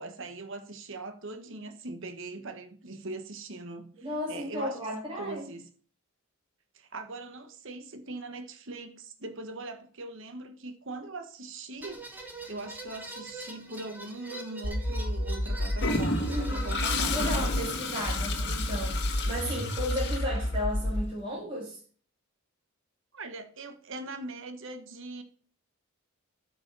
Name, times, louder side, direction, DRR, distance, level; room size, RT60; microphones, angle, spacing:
voice 1, 0.0-3.9 4.3-4.8 5.2-5.6 6.7-12.1 12.5-17.4 19.2-19.3 23.1-25.2, right 2 dB, 60° right, 1.3 m, -41 dB
voice 2, 4.0-5.5 16.3-16.8 17.1-21.8, equal, 25° right, 2.2 m, -34 dB
sound 1, 11.8-17.0, right 2 dB, 10° right, 1.5 m, -43 dB
sound 2, 14.6-17.6 18.1-21.1, equal, 70° left, 1.5 m, -30 dB
Toilet flush, 15.8-20.9, left 3 dB, 50° left, 1.7 m, -33 dB
8.6 x 5.5 x 6.0 m
head